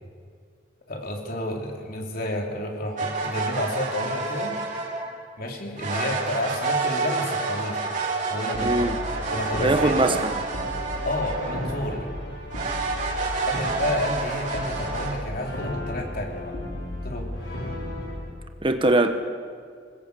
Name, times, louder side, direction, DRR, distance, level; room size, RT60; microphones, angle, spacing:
voice 1, 0.9-4.5 5.4-7.9 8.3-8.8 9.3-10.2 11.0-12.1 13.5-16.5 17.0-17.3, left 1 dB, 55° left, 1 dB, 3.8 m, -30 dB
sound 1, 3.0-5.2 5.8-12.0 12.5-15.1, right 3 dB, 45° right, 4.9 m, -29 dB
Brass instrument, 8.5-18.3, left 1 dB, 75° left, 6.3 m, -34 dB
voice 2, 8.6-9.0 9.6-10.3 18.6-19.2, right 2 dB, 30° right, 7 dB, 1.2 m, -21 dB
25.5 x 21.0 x 8.4 m, 2.1 s
head